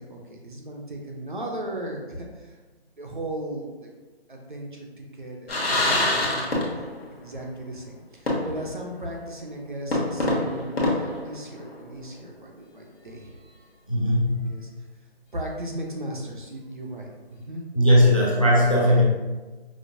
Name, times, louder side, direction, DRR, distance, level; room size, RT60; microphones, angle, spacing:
voice 1, 0.0-2.6 3.0-3.9 4.3-6.5 7.2-13.3 13.9-14.1 14.5-14.7 15.3-17.6, right 1 dB, 50° right, 0 dB, 0.6 m, -36 dB
sound 1, 5.5-7.1 7.4-7.5 8.3-8.8 9.1-9.2 9.9-11.9, left 1 dB, 65° left, 1.0 m, -25 dB
voice 2, 13.9-14.6 17.7-19.0, equal, 30° left, -4 dB, 0.5 m, -19 dB
4.9 x 2.0 x 2.6 m, 1.2 s
figure-of-eight pair, 180°, 32 cm